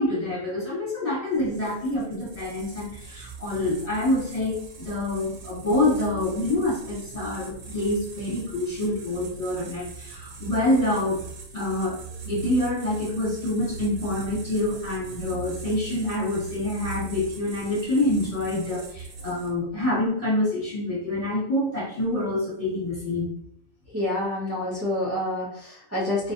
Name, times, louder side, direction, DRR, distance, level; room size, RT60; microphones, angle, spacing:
voice 1, 0.0-11.2 11.5-23.3, left 1 dB, 25° left, -7 dB, 1.8 m, -26 dB
sound 1, 1.3-19.7, right 4 dB, 55° right, 1.1 m, -40 dB
voice 2, 23.9-26.3, left 1 dB, 10° right, -8 dB, 1.2 m, -28 dB
4.2 x 3.3 x 2.6 m, 0.67 s
omnidirectional pair, 1.3 m